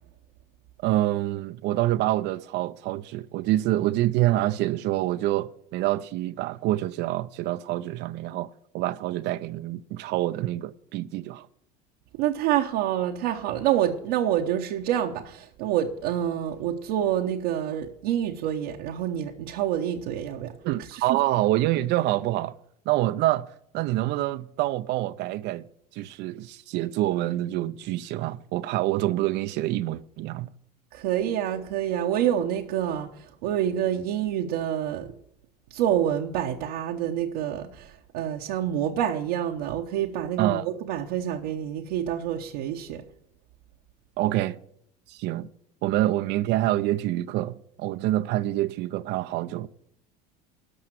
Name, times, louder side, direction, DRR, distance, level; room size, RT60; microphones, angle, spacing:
voice 1, 0.8-11.5 20.6-22.6 22.9-25.7 25.9-30.5 40.4-40.7 44.2-44.6 45.1-45.5 45.8-49.7, right 15 dB, 55° right, 0.5 m, -26 dB
voice 2, 12.2-20.5 21.1-21.2 30.9-35.1 35.7-43.0, right 10 dB, 70° right, 0.9 m, -27 dB
13.0 x 5.6 x 7.5 m
hypercardioid pair, 85°, 21 cm